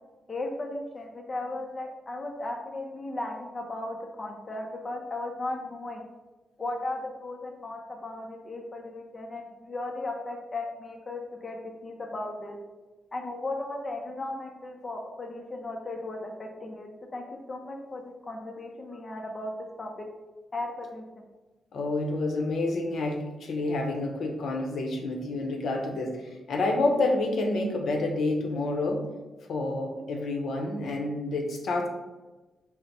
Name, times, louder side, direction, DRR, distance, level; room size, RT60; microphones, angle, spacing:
voice 1, 0.3-6.0 6.6-12.6 13.1-19.5 19.8-20.1 20.5-21.0, left 2 dB, 25° left, 1 dB, 0.5 m, -36 dB
voice 2, 21.7-29.0 29.5-31.9, left 2 dB, 70° left, 2 dB, 0.7 m, -28 dB
4.4 x 2.0 x 4.0 m, 1.2 s
cardioid pair, 125°, 0 cm